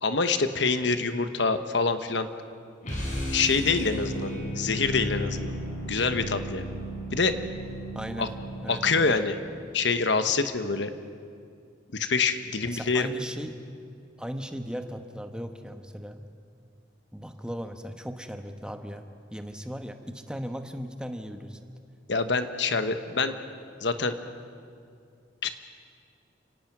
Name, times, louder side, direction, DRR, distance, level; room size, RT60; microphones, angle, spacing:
voice 1, 0.0-2.3 3.3-5.5 5.8-6.7 7.1-7.3 8.2-8.3 8.7-9.4 9.7-10.9 11.9-13.1 22.1-23.4 23.8-24.2 25.4-25.5, left 4 dB, 65° left, 9 dB, 1.2 m, -26 dB
sound 1, 2.8-9.3, equal, 40° left, 5.1 m, -34 dB
voice 2, 7.9-8.3 8.6-8.8 12.6-13.6 14.2-16.2 17.1-21.6, equal, 5° right, 6 dB, 1.1 m, -37 dB
29.5 x 17.5 x 6.1 m, 2.4 s
head